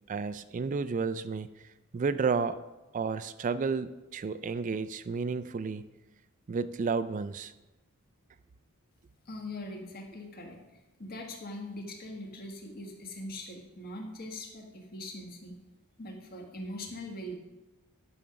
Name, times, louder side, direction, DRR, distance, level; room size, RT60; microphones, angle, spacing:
voice 1, 0.1-1.5 1.9-2.6 2.9-5.9 6.5-7.5, right 5 dB, 35° right, 14 dB, 0.3 m, -31 dB
voice 2, 9.2-10.6 11.0-15.6 16.0-17.4, left 1 dB, 45° left, 1 dB, 1.5 m, -41 dB
11.0 x 5.1 x 5.8 m, 1.0 s
head